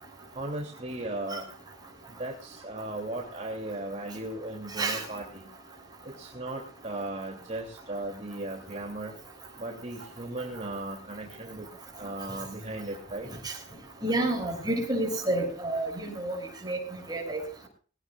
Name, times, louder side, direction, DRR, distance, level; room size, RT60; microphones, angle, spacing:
voice 1, 0.3-1.5 2.1-5.5 6.0-9.1 9.6-11.7 12.0-13.3, right 1 dB, 35° right, 0 dB, 3.0 m, -37 dB
voice 2, 14.0-16.4 16.6-16.8 17.1-17.7, right 1 dB, 20° right, 1 dB, 6.6 m, -29 dB
22.5 x 17.0 x 2.5 m, 0.39 s
head